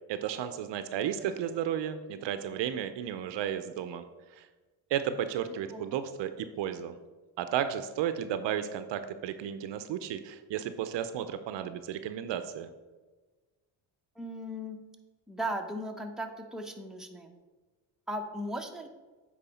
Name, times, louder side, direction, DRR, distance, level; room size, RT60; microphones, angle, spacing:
voice 1, 0.1-4.0 4.3-4.5 4.9-7.0 7.4-12.7, right 9 dB, 65° right, 10 dB, 0.7 m, -33 dB
voice 2, 14.2-14.8 15.3-17.3 18.1-18.9, right 1 dB, ahead, 2 dB, 0.9 m, -37 dB
8.2 x 4.7 x 4.2 m, 1.3 s
supercardioid pair, 70°, 47 cm